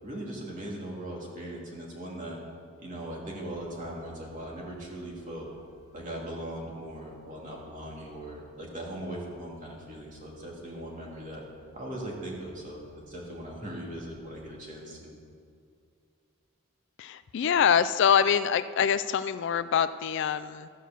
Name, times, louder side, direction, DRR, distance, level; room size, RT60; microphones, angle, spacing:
voice 1, 0.0-2.4 2.8-5.5 5.9-11.4 11.7-15.1, right 1 dB, 35° right, -2 dB, 2.4 m, -39 dB
sound 1, 3.5-14.2, left 1 dB, 15° right, 0.6 m, -63 dB
voice 2, 17.0-20.7, left 7 dB, 55° left, 13 dB, 0.3 m, -25 dB
14.5 x 6.3 x 6.7 m, 2.3 s
head